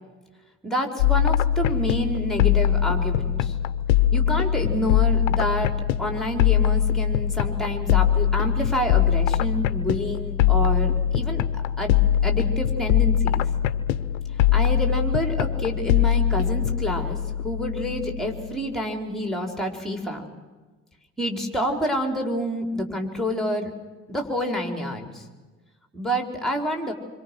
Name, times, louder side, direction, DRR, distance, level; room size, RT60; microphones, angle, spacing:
voice 1, 0.6-3.5 4.1-5.7 6.0-11.4 11.8-11.9 12.2-13.5 14.5-17.2 17.4-20.3 21.2-23.7 24.1-25.2 25.9-26.9, equal, ahead, 4 dB, 5.0 m, -28 dB
sound 1, 1.0-18.6, left 10 dB, 65° left, 0.8 m, -22 dB
27.0 x 25.5 x 6.5 m, 1.3 s
figure-of-eight pair, 55°, 38 cm